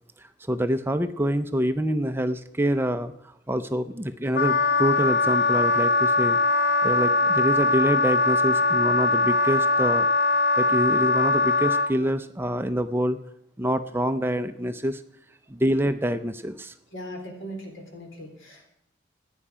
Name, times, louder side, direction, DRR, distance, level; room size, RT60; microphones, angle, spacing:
voice 1, 0.2-6.4 6.8-10.1 10.6-13.2 13.6-15.0 15.5-16.7, equal, 10° right, 10 dB, 0.5 m, -26 dB
Wind instrument woodwind instrument, 4.3-11.9, left 3 dB, 55° left, 0.7 m, -21 dB
voice 2, 16.9-18.7, equal, 85° left, 2 dB, 3.6 m, -39 dB
15.5 x 10.0 x 4.9 m, 0.76 s
head